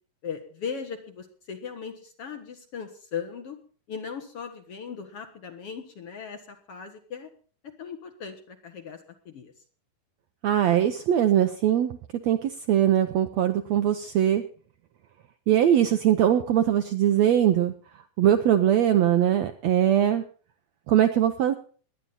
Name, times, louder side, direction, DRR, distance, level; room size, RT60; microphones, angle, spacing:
voice 1, 0.2-3.6 3.9-7.3 7.6-9.0 9.3-9.5, left 6 dB, 55° left, 6 dB, 1.9 m, -38 dB
voice 2, 10.4-12.0 12.2-14.4 15.5-17.7 18.2-20.2 20.9-21.5, right 10 dB, 75° right, 8 dB, 1.6 m, -21 dB
18.5 x 11.5 x 4.1 m, 0.40 s
omnidirectional pair, 3.9 m